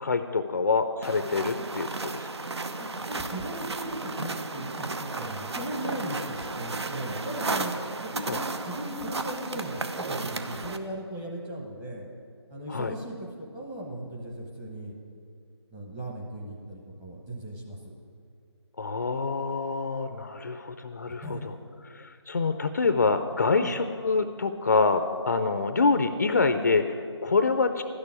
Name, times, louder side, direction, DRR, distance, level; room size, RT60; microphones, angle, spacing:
voice 1, 0.0-2.3 8.2-8.4 12.7-12.9 18.8-21.5 21.9-27.8, left 4 dB, 40° left, 9 dB, 0.5 m, -26 dB
sound 1, 1.0-10.8, right 3 dB, 65° right, 1.0 m, -34 dB
voice 2, 2.8-7.7 8.0-12.1 12.5-14.9 15.7-17.8 21.2-21.5 23.6-23.7, right 1 dB, 10° right, -2 dB, 1.0 m, -37 dB
12.0 x 6.9 x 9.7 m, 2.3 s
figure-of-eight pair, 165°, 15 cm